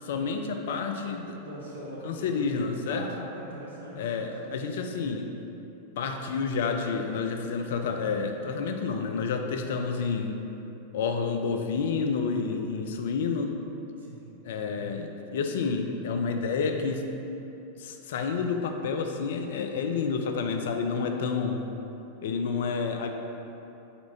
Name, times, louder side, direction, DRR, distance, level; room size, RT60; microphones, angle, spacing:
voice 1, 0.0-1.4 2.0-3.1 4.0-5.3 6.0-10.4 10.9-13.6 14.4-17.1 17.8-21.7 22.2-23.1, left 5 dB, 55° left, 5 dB, 0.3 m, -29 dB
voice 2, 1.4-2.5 2.9-4.5 14.0-14.3 20.9-21.2, equal, 70° right, -5 dB, 0.9 m, -41 dB
4.3 x 4.2 x 2.6 m, 3.0 s
figure-of-eight pair, 90°, 0 cm